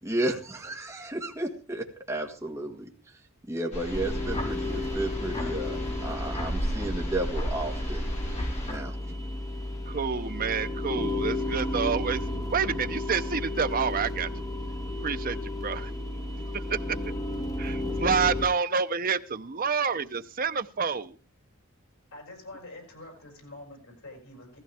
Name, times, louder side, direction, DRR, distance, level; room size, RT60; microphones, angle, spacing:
voice 1, 0.0-2.9 3.5-8.0 8.3-9.0, right 1 dB, 15° right, 1.7 m, -33 dB
sound 1, 3.7-8.7, equal, 30° left, 5.0 m, -34 dB
sound 2, 3.9-18.5, left 1 dB, 15° left, 1.5 m, -33 dB
voice 2, 9.9-12.2 12.5-14.3 15.0-15.9 16.5-17.0 17.6-21.2, right 6 dB, 40° right, 0.7 m, -28 dB
voice 3, 22.1-24.6, left 2 dB, 75° left, 6.5 m, -46 dB
16.5 x 14.5 x 3.5 m
head